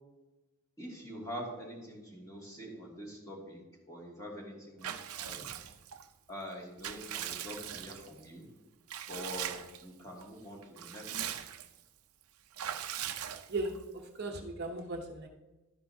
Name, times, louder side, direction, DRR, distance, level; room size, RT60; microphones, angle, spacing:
voice 1, 0.8-3.6 3.9-4.9 5.2-5.4 6.3-8.4 9.1-11.3, equal, 15° left, -3 dB, 2.4 m, -45 dB
Water / Bathtub (filling or washing) / Liquid, 4.8-6.1 6.5-8.2 8.9-9.8 10.2-10.3 10.6-11.8 12.6-13.8, right 10 dB, 75° right, 0.6 m, -40 dB
voice 2, 13.5-15.3, right 2 dB, 45° right, 2 dB, 0.9 m, -37 dB
12.0 x 10.0 x 2.8 m, 1.1 s
head